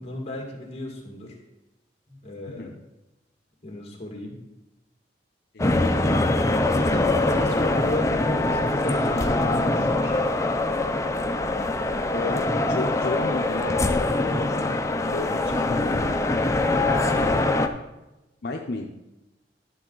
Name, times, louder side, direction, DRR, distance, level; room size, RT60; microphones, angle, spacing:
voice 1, 0.0-1.4 2.1-2.7 3.6-4.4 6.7-10.2 17.0-17.4, left 1 dB, 35° left, 0 dB, 2.0 m, -34 dB
voice 2, 5.5-5.9 12.1-14.5 15.1-16.2 18.4-18.9, left 3 dB, 60° left, 1 dB, 0.7 m, -33 dB
sound 1, 5.6-17.7, left 2 dB, 15° left, 0.5 m, -23 dB
11.5 x 7.4 x 3.9 m, 0.99 s
head